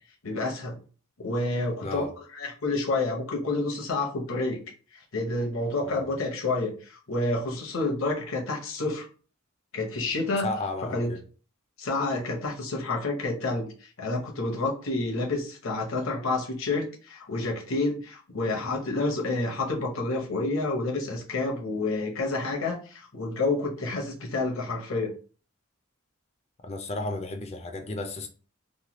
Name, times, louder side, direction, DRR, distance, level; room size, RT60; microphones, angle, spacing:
voice 1, 0.2-0.8 1.2-2.1 2.3-4.6 5.1-9.1 9.7-10.5 10.9-11.1 11.8-25.1, left 2 dB, 70° left, 0.8 m, -29 dB
voice 2, 1.8-2.1 5.8-6.1 10.4-11.2 26.6-28.3, left 2 dB, 30° left, 0.4 m, -33 dB
3.1 x 2.2 x 2.9 m
head